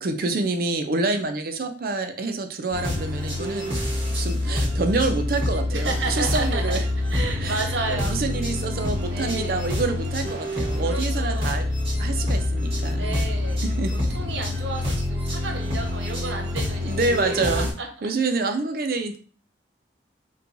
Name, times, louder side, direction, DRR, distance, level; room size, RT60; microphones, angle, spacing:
voice 1, 0.0-3.7 4.1-6.8 7.4-11.7 12.0-13.2 13.6-13.9 16.8-17.7 18.0-19.2, right 3 dB, 50° right, 6 dB, 0.4 m, -27 dB
sound 1, 2.7-17.7, left 1 dB, 30° right, 1.1 m, -26 dB
voice 2, 5.7-6.8 7.1-8.2 9.1-9.7 10.8-11.6 13.0-16.9 17.2-18.1 18.4-18.5, right 3 dB, 80° right, 3 dB, 0.8 m, -32 dB
4.2 x 2.2 x 2.6 m, 0.40 s
head